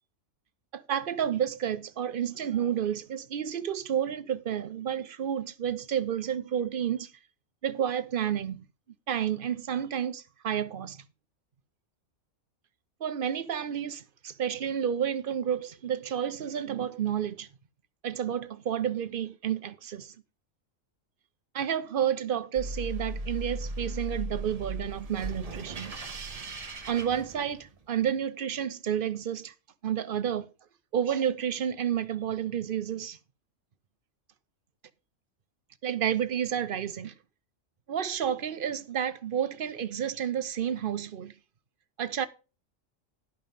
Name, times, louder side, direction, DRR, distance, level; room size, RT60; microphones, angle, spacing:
voice 1, 0.7-7.1 7.6-8.6 9.1-11.0 13.0-17.5 18.0-20.1 21.5-25.9 26.9-29.5 29.8-30.5 30.9-33.2 35.8-37.1 37.9-41.3 42.0-42.3, right 9 dB, 50° right, 0.8 m, -30 dB
sound 1, 22.6-27.9, right 2 dB, 30° right, 1.0 m, -37 dB
11.0 x 5.5 x 5.4 m
omnidirectional pair, 1.3 m